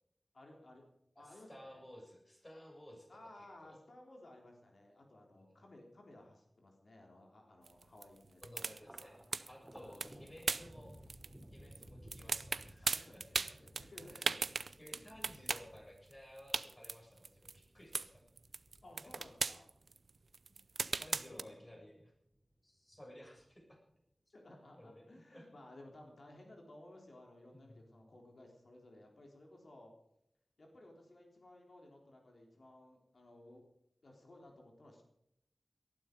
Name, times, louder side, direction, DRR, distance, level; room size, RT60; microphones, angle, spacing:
voice 1, 0.3-0.8 1.2-1.8 3.1-8.8 9.8-10.1 10.5-10.6 12.8-14.5 14.9-15.4 18.8-19.7 21.0-21.8 24.3-29.9 30.6-33.6 34.0-35.0, left 1 dB, 70° left, 1 dB, 3.7 m, -58 dB
voice 2, 1.2-3.1 3.4-3.8 5.3-5.5 8.4-11.0 11.5-13.5 14.1-14.3 14.8-18.2 19.0-19.1 20.8-22.1 22.6-23.8 24.8-25.0 25.3-25.5 27.5-28.2, equal, 25° left, -1 dB, 7.1 m, -56 dB
sound 1, 7.6-11.4 11.7-11.8 12.1-15.7 16.1-16.2 16.4-17.6 17.9-18.1 18.4-21.4, right 4 dB, 80° right, 0.6 m, -37 dB
Thunder, 8.7-21.4 21.8-22.6 22.9-23.8, equal, 10° right, 3.3 m, -59 dB
19.0 x 12.5 x 5.3 m, 0.75 s
wide cardioid pair, 90°, 0 cm